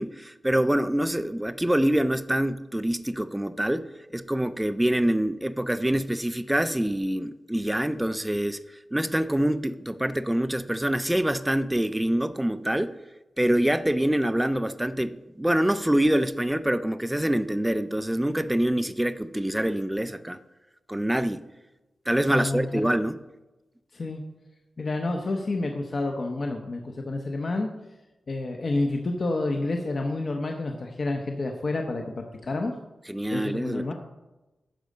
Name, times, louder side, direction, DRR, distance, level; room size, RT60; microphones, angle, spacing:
voice 1, 0.0-8.6 8.9-12.9 13.4-20.4 20.9-21.4 22.1-23.2 33.1-33.9, right 1 dB, 10° right, 0.4 m, -25 dB
voice 2, 22.3-22.9 23.9-24.2 24.8-27.7 28.3-32.7 33.3-33.9, left 2 dB, 45° left, 0.8 m, -29 dB
10.5 x 4.9 x 6.5 m
wide cardioid pair, 130°, 0 cm